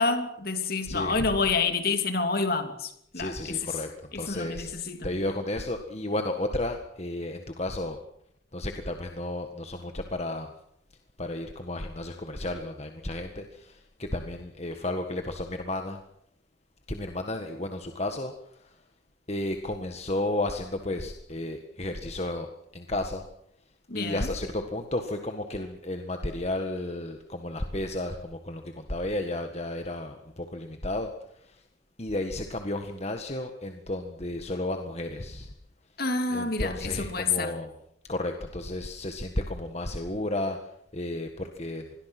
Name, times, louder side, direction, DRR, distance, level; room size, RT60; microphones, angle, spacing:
voice 1, 0.0-3.7 4.1-5.1 23.9-24.3 36.0-37.6, left 4 dB, 50° left, 2.9 m, -28 dB
voice 2, 0.9-1.3 3.1-4.7 5.0-8.0 8.5-10.5 11.2-16.0 16.9-18.3 18.6-18.7 19.3-22.5 22.7-23.2 23.9-31.6 32.0-35.5 36.3-37.7 38.1-40.6 40.9-41.9, left 1 dB, 35° left, 1.6 m, -33 dB
26.5 x 21.5 x 6.1 m
head